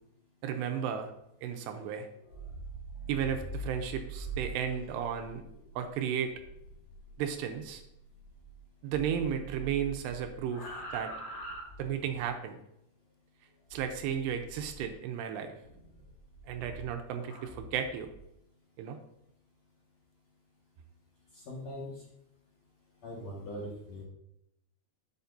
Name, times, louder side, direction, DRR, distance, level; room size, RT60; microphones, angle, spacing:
voice 1, 0.4-1.1 1.4-2.1 3.1-5.4 5.8-6.3 7.2-7.8 8.8-11.1 11.8-12.6 13.7-15.5 16.5-18.1 18.8-19.0, right 8 dB, 80° right, 5 dB, 2.8 m, -34 dB
sound 1, 2.2-8.6 8.9-12.3 13.7-15.0 15.6-18.2, right 3 dB, 80° left, 4.0 m, -44 dB
voice 2, 21.3-22.0 23.0-24.0, left 1 dB, 50° left, -5 dB, 2.2 m, -41 dB
11.5 x 7.8 x 2.7 m, 0.81 s
omnidirectional pair, 5.1 m